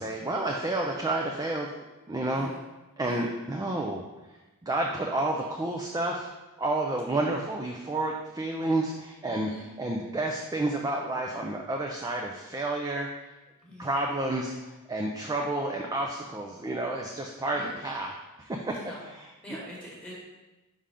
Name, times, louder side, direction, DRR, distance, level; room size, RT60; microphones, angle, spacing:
voice 1, 0.0-1.7 2.1-2.5 3.0-4.0 4.6-6.3 6.6-13.1 13.8-19.6, right 2 dB, 15° right, 1 dB, 0.4 m, -30 dB
voice 2, 9.3-9.6 13.6-14.0 17.5-17.7 18.7-19.0 19.4-20.1, left 1 dB, 5° left, -5 dB, 1.4 m, -44 dB
5.5 x 3.7 x 4.9 m, 1.1 s
head